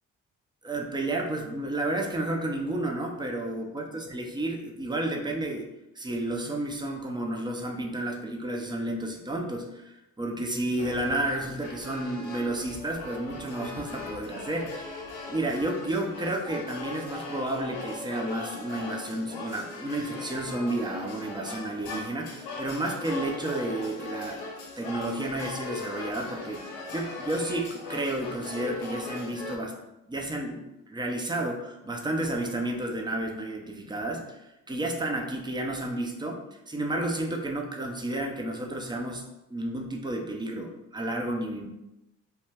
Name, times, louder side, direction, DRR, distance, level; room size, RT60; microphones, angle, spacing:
voice 1, 0.6-5.7 6.0-24.4 24.8-29.8 30.1-34.4 34.7-39.2 39.5-41.7, right 1 dB, 10° right, 1 dB, 0.5 m, -31 dB
sound 1, 10.8-29.6, left 3 dB, 65° left, 0.6 m, -39 dB
2.3 x 2.1 x 3.3 m, 0.95 s
hypercardioid pair, 40°, 40 cm